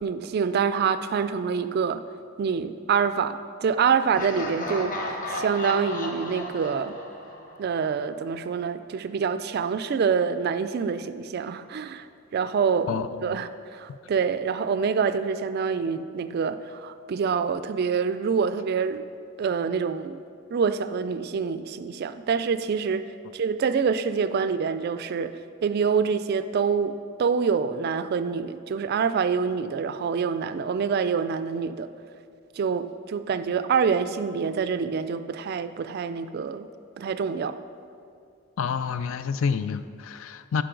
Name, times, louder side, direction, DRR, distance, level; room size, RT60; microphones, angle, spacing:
voice 1, 0.0-2.0 2.4-5.0 5.3-6.9 7.6-12.1 12.3-19.1 19.4-20.2 20.5-23.0 23.3-31.9 32.6-36.7 37.0-37.6, right 6 dB, 50° right, 11 dB, 0.3 m, -26 dB
Laughter, 4.1-8.0, left 1 dB, 40° left, 0.8 m, -34 dB
voice 2, 12.9-13.4 38.6-40.6, left 6 dB, 70° left, 12 dB, 0.3 m, -28 dB
11.5 x 5.1 x 3.8 m, 2.3 s
head